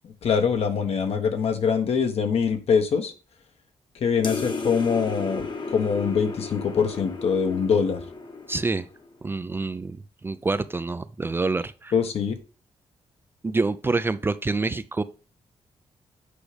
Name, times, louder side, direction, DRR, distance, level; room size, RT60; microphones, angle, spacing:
voice 1, 0.0-3.1 4.0-5.5 5.7-8.0 11.9-12.4, left 6 dB, 65° left, 1.2 m, -23 dB
sound 1, 4.2-9.1, left 3 dB, 45° left, 1.1 m, -34 dB
voice 2, 8.5-8.9 9.2-10.0 10.2-11.9 13.4-15.0, right 3 dB, 20° right, 0.4 m, -26 dB
8.3 x 4.9 x 3.3 m
cardioid pair, 115°, 11 cm